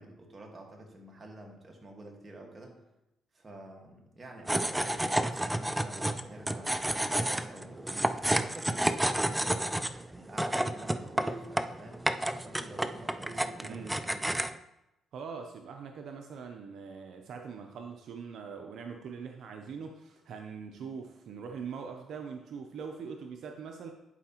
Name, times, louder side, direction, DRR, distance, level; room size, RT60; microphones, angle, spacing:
voice 1, 0.0-2.8 3.3-9.8 10.1-14.4, right 1 dB, 30° right, 1 dB, 1.5 m, -48 dB
sound 1, 4.5-14.6, right 1 dB, 10° right, 0.3 m, -31 dB
voice 2, 13.6-14.0 15.1-23.9, right 6 dB, 70° right, 4 dB, 0.6 m, -42 dB
11.0 x 4.9 x 2.9 m, 0.89 s
cardioid pair, 90°, 0 cm